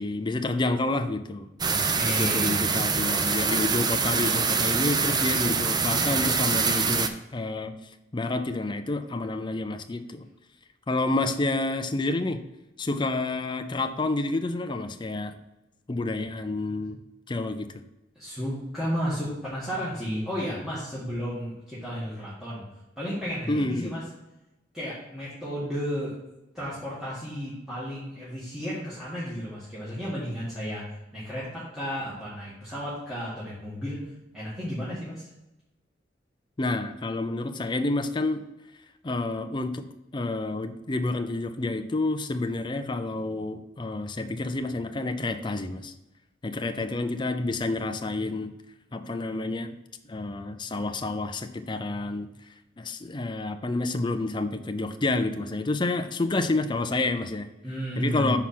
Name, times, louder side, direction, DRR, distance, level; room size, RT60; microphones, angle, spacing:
voice 1, 0.0-1.5 2.1-7.7 8.1-10.3 10.9-12.4 12.8-15.3 15.9-17.0 17.3-17.7 23.5-23.9 36.6-38.4 39.0-39.8 40.1-45.9 46.4-48.5 48.9-49.8 50.1-52.3 52.8-57.5 58.0-58.4, left 2 dB, 25° left, 7 dB, 0.5 m, -29 dB
voice 2, 1.6-2.7 18.2-22.6 23.0-24.0 24.7-26.2 26.5-30.8 31.1-34.0 34.3-35.3 57.6-58.4, equal, 5° right, -10 dB, 1.9 m, -33 dB
sound 1, 1.6-7.1, right 5 dB, 25° right, 0.4 m, -25 dB
5.8 x 4.8 x 5.9 m, 0.96 s
head